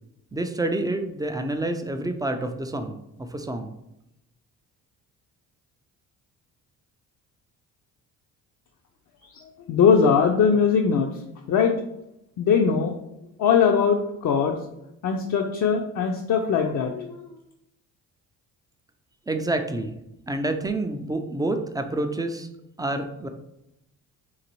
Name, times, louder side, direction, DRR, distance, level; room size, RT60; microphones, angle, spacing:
voice 1, 0.3-3.7 19.3-19.9 20.3-22.5 22.8-23.3, right 2 dB, 10° right, 6 dB, 0.3 m, -28 dB
voice 2, 9.3-11.1 11.5-11.7 12.4-12.9 13.4-14.6 15.0-17.3, left 6 dB, 45° left, 2 dB, 0.5 m, -21 dB
3.9 x 2.6 x 2.9 m, 0.84 s
supercardioid pair, 60°, 41 cm